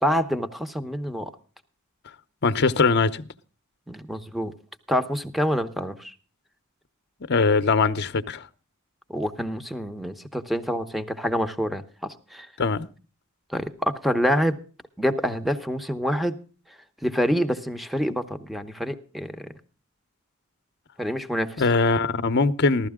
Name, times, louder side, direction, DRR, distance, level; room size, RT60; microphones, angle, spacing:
voice 1, 0.0-1.3 3.9-4.5 4.9-6.1 9.1-12.5 13.5-14.6 15.0-16.4 17.0-19.5 21.0-21.6, equal, ahead, 0.9 m, -26 dB
voice 2, 2.4-3.3 7.3-8.5 12.6-12.9 21.6-22.9, left 4 dB, 50° left, 0.8 m, -21 dB
15.5 x 13.0 x 3.6 m
head